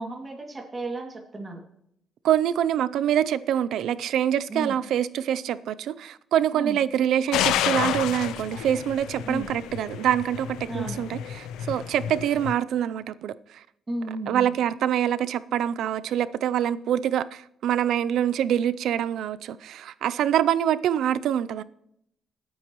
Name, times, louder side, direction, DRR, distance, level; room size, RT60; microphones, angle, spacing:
voice 1, 0.0-1.6 4.5-4.8 6.5-6.8 9.2-9.5 10.7-11.0 13.9-14.5, right 2 dB, 25° right, 2.4 m, -34 dB
voice 2, 2.2-13.6 14.3-21.6, right 10 dB, 80° right, 0.5 m, -25 dB
sound 1, 7.3-12.5, left 11 dB, 90° left, 0.5 m, -30 dB
26.5 x 9.3 x 3.1 m
cardioid pair, 90°, 0 cm